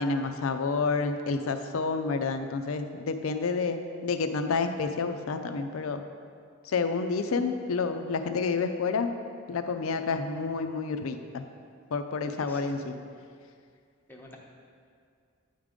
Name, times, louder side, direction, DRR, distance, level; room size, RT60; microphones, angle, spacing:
voice 1, 0.0-6.0 6.6-9.1 9.5-11.4 11.9-12.9, left 4 dB, 85° left, 8 dB, 0.5 m, -29 dB
voice 2, 12.4-12.7 14.1-14.4, left 1 dB, 10° left, -2 dB, 0.7 m, -48 dB
8.9 x 3.6 x 5.1 m, 2.2 s
head